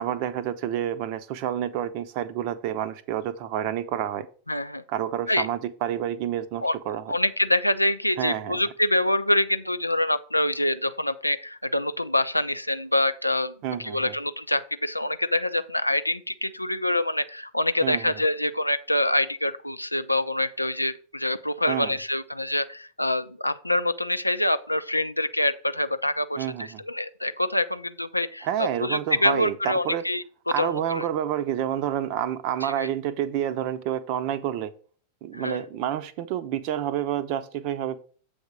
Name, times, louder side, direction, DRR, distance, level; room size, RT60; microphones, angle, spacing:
voice 1, 0.0-4.3 4.9-7.0 8.2-8.6 13.6-14.1 17.8-18.1 21.7-22.0 26.4-26.8 28.4-30.0 30.5-34.7 35.2-38.0, right 10 dB, 45° right, 14 dB, 0.7 m, -29 dB
voice 2, 4.5-4.8 5.3-5.5 6.6-6.8 7.1-13.5 13.8-30.2 30.6-31.0 32.6-32.9 35.3-35.6, left 1 dB, 85° left, 11 dB, 0.5 m, -25 dB
7.9 x 3.5 x 6.5 m, 0.41 s
figure-of-eight pair, 90°, 0 cm